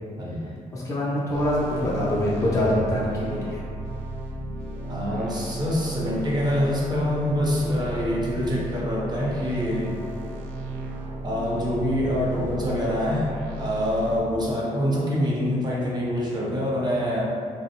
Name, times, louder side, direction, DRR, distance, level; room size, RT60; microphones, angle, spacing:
voice 1, 0.2-0.5 4.9-9.9 11.2-17.2, equal, 25° right, -5 dB, 0.8 m, -25 dB
voice 2, 0.7-3.4, left 1 dB, 20° left, -7 dB, 0.5 m, -24 dB
sound 1, 1.3-14.2, right 2 dB, 85° right, 0.4 m, -34 dB
2.4 x 2.0 x 2.9 m, 2.3 s
cardioid pair, 75°, 15 cm